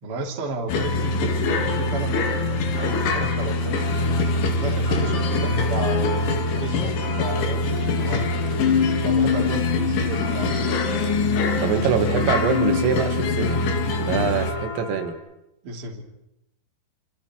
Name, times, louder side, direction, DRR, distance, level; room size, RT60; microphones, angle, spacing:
voice 1, 0.0-3.8 4.6-8.3 9.0-10.6 15.6-16.0, right 3 dB, 30° right, 0 dB, 3.2 m, -32 dB
sound 1, 0.7-14.5, left 3 dB, 70° left, 4.4 m, -23 dB
sound 2, 2.7-15.1, left 3 dB, 40° left, 8.9 m, -35 dB
voice 2, 11.6-13.6 14.0-15.2, right 7 dB, 85° right, 5 dB, 4.3 m, -24 dB
29.0 x 27.5 x 4.5 m, 0.87 s
omnidirectional pair, 5.8 m